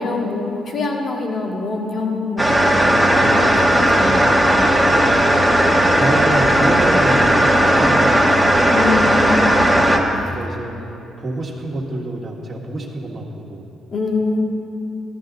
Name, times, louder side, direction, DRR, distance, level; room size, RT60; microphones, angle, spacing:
voice 1, 0.0-2.9 3.2-4.3 5.6-5.8 8.7-9.7 13.9-14.4, left 3 dB, 50° left, 0 dB, 1.9 m, -24 dB
sound 1, 2.4-10.0, right 1 dB, ahead, 1.3 m, -15 dB
voice 2, 2.9-3.7 4.9-5.3 5.9-8.4 10.3-10.9 11.2-13.7, right 2 dB, 30° right, -5 dB, 1.7 m, -28 dB
15.0 x 11.5 x 4.0 m, 2.9 s
cardioid pair, 90°, 0 cm